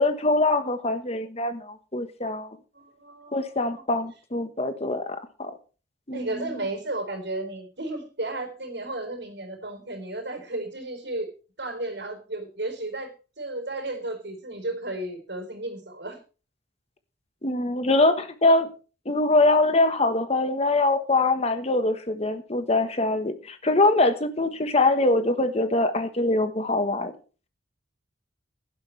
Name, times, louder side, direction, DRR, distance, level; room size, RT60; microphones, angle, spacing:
voice 1, 0.0-2.6 3.3-5.5 6.1-6.6 17.4-18.7 19.0-27.1, left 2 dB, 35° left, 9 dB, 1.3 m, -23 dB
voice 2, 2.7-3.8 6.1-11.3 11.6-13.1 13.4-16.2 24.4-24.8, right 2 dB, 60° right, 4 dB, 4.3 m, -34 dB
16.0 x 11.5 x 3.4 m, 0.35 s
head